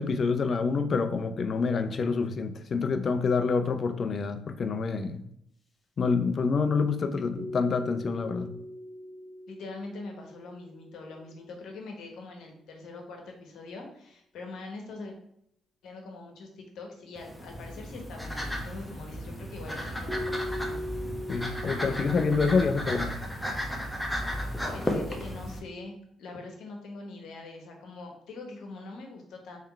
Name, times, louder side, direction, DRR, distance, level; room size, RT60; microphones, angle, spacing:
voice 1, 0.0-5.2 6.0-8.5 21.3-23.1, left 4 dB, 50° left, 10 dB, 0.5 m, -27 dB
sound 1, 7.3-11.5 20.1-22.2, equal, 30° left, 1.0 m, -39 dB
voice 2, 9.5-15.1 15.8-20.8 24.4-29.6, left 3 dB, 70° left, 2 dB, 1.1 m, -43 dB
sound 2, 17.2-25.6, equal, 10° left, 1.1 m, -34 dB
3.6 x 3.2 x 4.4 m, 0.73 s
supercardioid pair, 55°, 0 cm